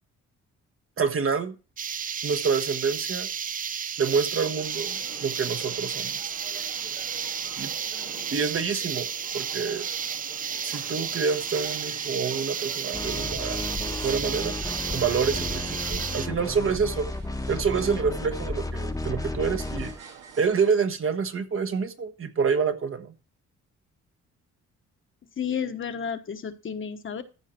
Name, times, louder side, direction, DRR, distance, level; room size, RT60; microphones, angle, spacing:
voice 1, 1.0-1.5 2.2-3.3 4.0-6.3 7.6-7.7 8.3-9.1 9.3-9.9 10.6-13.6 14.0-14.6 14.9-17.1 17.5-19.9 20.4-23.1, right 5 dB, 45° right, 1.2 m, -27 dB
sound 1, 1.8-16.3, right 7 dB, 30° right, 0.4 m, -32 dB
sound 2, 4.6-20.7, right 6 dB, 90° right, 2.0 m, -46 dB
sound 3, 12.9-20.0, left 2 dB, 10° left, 1.0 m, -33 dB
voice 2, 25.4-27.2, left 7 dB, 40° left, 1.1 m, -31 dB
14.0 x 4.8 x 4.4 m
cardioid pair, 90°, 30 cm